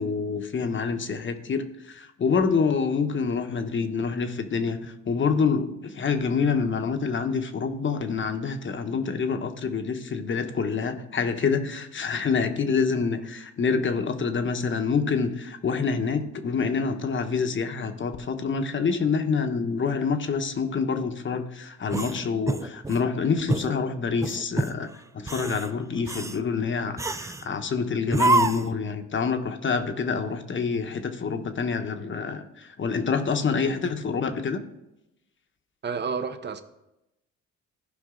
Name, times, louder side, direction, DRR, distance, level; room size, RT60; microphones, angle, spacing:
voice 1, 0.0-34.6, left 5 dB, 40° left, 1.0 m, -27 dB
sound 1, 21.9-23.1 23.5-23.7 24.2-24.8 25.2-25.7 26.1-26.4 27.0-27.5 28.1-28.8, right 3 dB, 10° right, 0.4 m, -26 dB
voice 2, 35.8-36.6, right 5 dB, 35° right, 0.8 m, -30 dB
15.5 x 5.3 x 3.8 m
cardioid pair, 90°, 30 cm